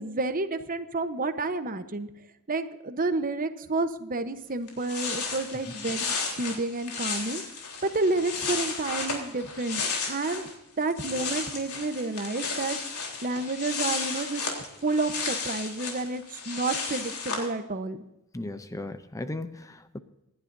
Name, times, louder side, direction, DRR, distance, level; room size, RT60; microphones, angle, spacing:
voice 1, 0.0-2.1 2.5-7.4 7.8-10.5 10.8-12.8 13.2-14.5 14.8-18.0, right 3 dB, 40° right, 0.9 m, -30 dB
sound 1, 4.4-4.5 4.7-10.5 10.8-17.5, left 5 dB, 80° left, 3.6 m, -33 dB
voice 2, 18.3-20.0, left 2 dB, 15° left, 0.5 m, -36 dB
26.5 x 11.5 x 2.7 m
head